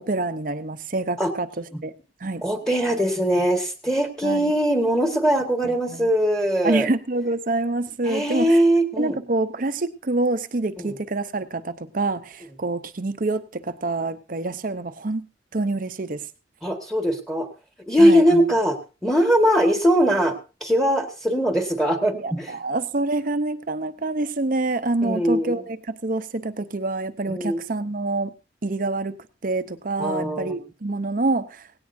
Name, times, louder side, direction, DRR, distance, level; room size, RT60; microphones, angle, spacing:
voice 1, 0.0-1.9 2.2-2.4 4.2-4.5 5.6-6.1 6.6-8.6 9.0-15.3 15.5-16.2 18.0-18.2 22.1-28.3 28.6-29.2 29.4-31.7, right 2 dB, 45° right, 11 dB, 0.8 m, -26 dB
voice 2, 2.4-6.9 8.1-9.2 10.8-10.9 16.6-17.5 17.9-18.8 19.0-22.6 25.0-25.6 27.3-27.6 30.0-30.6, equal, 5° left, 5 dB, 1.6 m, -21 dB
17.5 x 17.0 x 2.7 m, 0.32 s
head